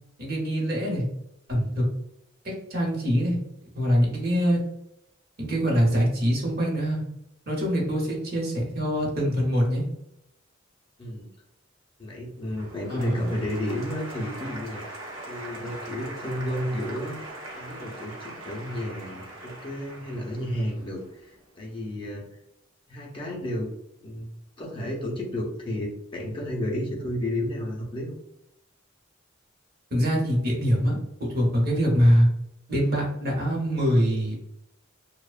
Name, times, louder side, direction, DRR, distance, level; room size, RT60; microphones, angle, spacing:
voice 1, 0.2-1.0 1.5-1.8 2.4-3.4 3.7-4.6 5.4-7.0 7.5-9.8 12.9-13.3 29.9-32.3 32.7-34.4, equal, 50° right, -2 dB, 0.8 m, -24 dB
voice 2, 12.0-17.2 17.6-22.2 22.9-23.7 24.0-28.2, left 1 dB, 25° left, -2 dB, 0.5 m, -32 dB
Applause, 12.5-21.6, right 1 dB, 90° right, 1.0 m, -41 dB
2.7 x 2.1 x 2.3 m, 0.83 s
head